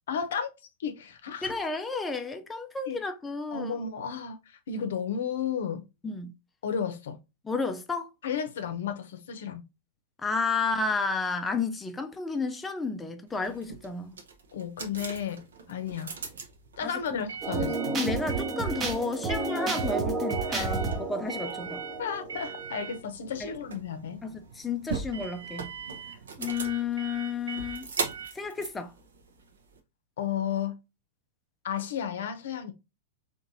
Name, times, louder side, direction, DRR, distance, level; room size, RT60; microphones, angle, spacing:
voice 1, 0.1-0.5 0.8-1.5 2.9-3.0 3.5-5.8 6.6-7.2 8.2-9.7 14.5-16.2 16.8-18.0 20.5-20.7 22.0-24.2 30.2-30.8 31.6-32.7, left 7 dB, 70° left, 0.7 m, -33 dB
voice 2, 1.4-3.7 6.0-6.3 7.4-8.1 10.2-14.2 16.8-17.2 17.9-21.8 23.4-23.5 24.2-25.7 26.4-27.9 28.3-28.9, left 4 dB, 15° left, 0.4 m, -32 dB
sound 1, 13.4-29.8, right 5 dB, 80° right, 0.7 m, -40 dB
sound 2, 17.4-22.9, right 3 dB, 25° right, 0.8 m, -31 dB
3.8 x 2.5 x 2.7 m
hypercardioid pair, 105°, 0 cm